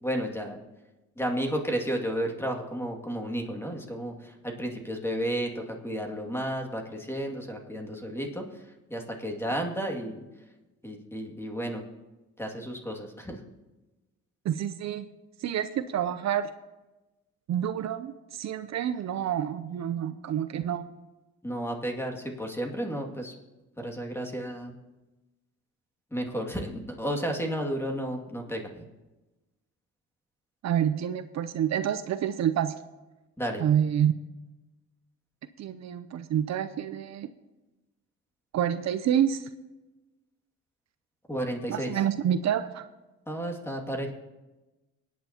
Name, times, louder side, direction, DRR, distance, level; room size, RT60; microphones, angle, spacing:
voice 1, 0.0-0.6 1.2-8.5 8.9-10.2 10.8-11.8 12.4-13.4 21.4-23.3 23.8-24.7 26.1-28.9 33.4-33.6 41.3-41.9 43.3-44.1, right 1 dB, 10° left, 1 dB, 2.3 m, -32 dB
voice 2, 14.4-15.1 15.4-16.5 17.5-20.9 30.6-32.8 33.6-34.1 35.6-37.3 38.5-39.5 41.7-42.8, right 9 dB, 65° right, 11 dB, 0.7 m, -28 dB
24.5 x 9.3 x 2.9 m, 1.1 s
cardioid pair, 90°, 30 cm